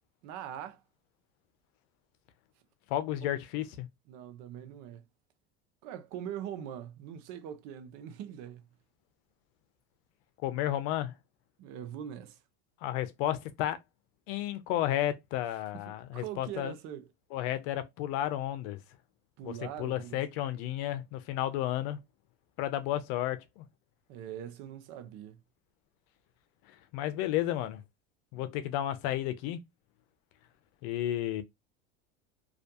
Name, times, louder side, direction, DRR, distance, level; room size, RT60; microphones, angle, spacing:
voice 1, 0.2-0.8 3.2-3.3 4.1-5.0 5.8-8.7 11.6-12.4 15.9-17.1 19.4-20.2 24.1-25.4, right 10 dB, 65° right, 0.6 m, -42 dB
voice 2, 2.9-3.9 10.4-11.1 12.8-13.8 14.3-16.7 17.3-18.8 19.4-22.0 22.6-23.6 26.9-27.8 28.3-29.6 30.8-31.4, left 13 dB, 70° left, 0.6 m, -32 dB
2.4 x 2.2 x 2.6 m
supercardioid pair, 100°, 32 cm